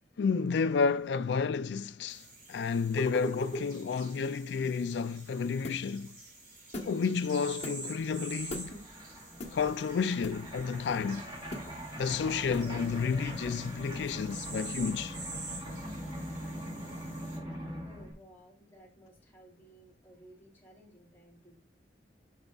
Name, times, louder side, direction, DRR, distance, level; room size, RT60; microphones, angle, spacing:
voice 1, 0.2-6.1 6.8-8.8 9.5-11.3 12.0-15.2, left 5 dB, 80° left, 0.4 m, -31 dB
sound 1, 2.1-17.4, right 2 dB, 55° right, 4.5 m, -48 dB
sound 2, 2.9-3.7 5.6-5.9 6.7-7.0 7.6-7.8 8.5-8.8 9.4-9.6 10.2-10.6 11.5-11.8 12.5-12.7, left 1 dB, 40° left, 1.3 m, -38 dB
voice 2, 6.4-6.8 17.8-21.6, equal, 10° left, 3.8 m, -57 dB
sound 3, 7.0-7.1 7.2-18.1, equal, 25° right, 5.0 m, -42 dB
10.5 x 7.2 x 2.4 m
head